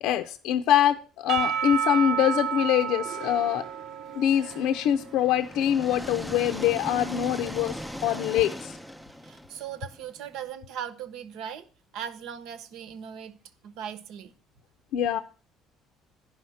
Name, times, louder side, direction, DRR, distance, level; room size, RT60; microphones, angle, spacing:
voice 1, 0.0-3.6 4.1-8.8 14.9-15.2, left 10 dB, 70° left, 0.6 m, -24 dB
Percussion / Church bell, 1.3-5.4, right 8 dB, 55° right, 0.9 m, -31 dB
sound 1, 4.5-10.4, equal, ahead, 0.4 m, -39 dB
voice 2, 9.2-11.7 11.9-13.4 13.6-14.3, right 9 dB, 70° right, 1.1 m, -38 dB
10.5 x 5.7 x 7.7 m
cardioid pair, 160°, 0 cm